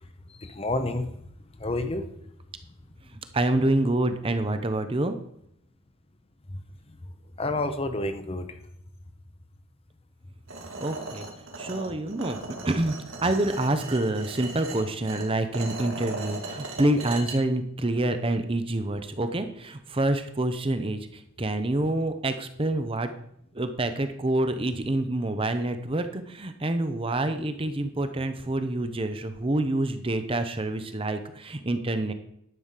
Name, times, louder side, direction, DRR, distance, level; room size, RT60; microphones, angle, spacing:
voice 1, 0.4-1.1 1.6-2.1 6.5-6.6 7.4-8.5, left 2 dB, 25° left, 9 dB, 0.8 m, -29 dB
voice 2, 3.1-5.2 10.8-11.3 11.6-12.4 12.6-13.0 13.2-23.1 23.5-32.1, right 1 dB, 25° right, 9 dB, 0.7 m, -27 dB
sound 1, 10.5-17.3, right 2 dB, 70° right, 2.2 m, -38 dB
11.0 x 5.0 x 7.4 m, 0.74 s
head